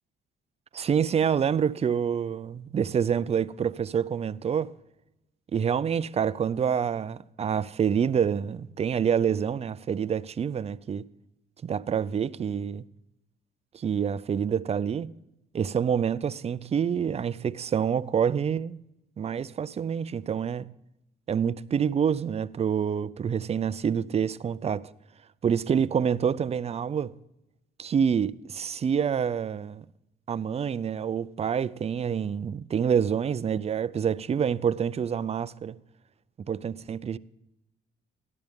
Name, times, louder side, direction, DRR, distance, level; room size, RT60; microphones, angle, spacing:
voice 1, 0.7-4.7 5.5-11.1 11.6-12.8 13.7-15.1 15.5-18.8 19.2-20.7 21.3-24.9 25.4-27.1 27.8-29.8 30.3-35.8 36.5-37.2, right 7 dB, 30° right, 0.4 m, -27 dB
12.0 x 12.0 x 3.5 m
cardioid pair, 90°, 20 cm